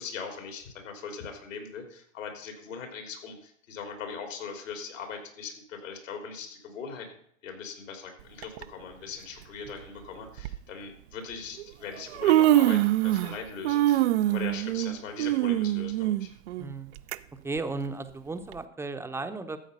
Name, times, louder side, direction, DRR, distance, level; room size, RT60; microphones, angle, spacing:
voice 1, 0.0-7.1 7.4-16.3, left 5 dB, 75° left, 5 dB, 3.6 m, -40 dB
Human voice, 8.4-8.6 9.7-9.8 10.4-10.6 11.6-11.7 12.0-13.4 13.6-17.2 17.6-17.7 18.5-18.6, right 14 dB, 55° right, 0.6 m, -24 dB
voice 2, 16.6-16.9 17.4-19.6, right 3 dB, 5° right, 8 dB, 0.8 m, -35 dB
13.0 x 7.9 x 5.4 m, 0.66 s
hypercardioid pair, 115°, 39 cm